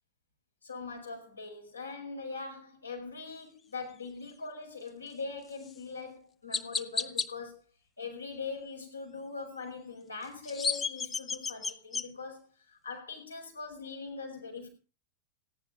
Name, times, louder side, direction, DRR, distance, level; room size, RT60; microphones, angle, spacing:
voice 1, 0.6-7.6 8.0-14.7, left 4 dB, 80° left, 5.1 m, -41 dB
Chirp tweet, 5.6-5.8 6.5-7.3 10.2-12.1, left 5 dB, 20° left, 0.8 m, -32 dB
15.5 x 11.0 x 5.0 m
figure-of-eight pair, 90°, 0 cm